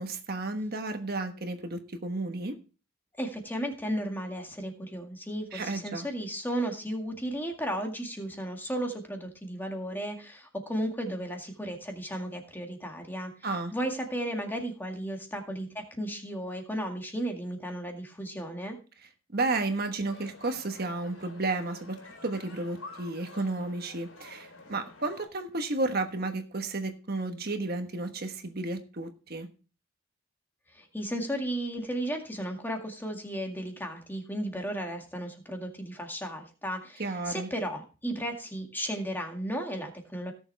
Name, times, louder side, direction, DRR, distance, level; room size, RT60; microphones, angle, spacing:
voice 1, 0.0-2.6 5.5-6.1 13.4-13.7 19.3-29.5 37.0-37.5, right 2 dB, 50° right, 6 dB, 1.3 m, -32 dB
voice 2, 3.2-13.3 13.7-18.8 30.7-40.3, right 1 dB, 10° left, 3 dB, 1.9 m, -34 dB
sound 1, 20.1-25.3, left 2 dB, 90° left, 4.0 m, -49 dB
17.5 x 7.1 x 3.4 m, 0.35 s
head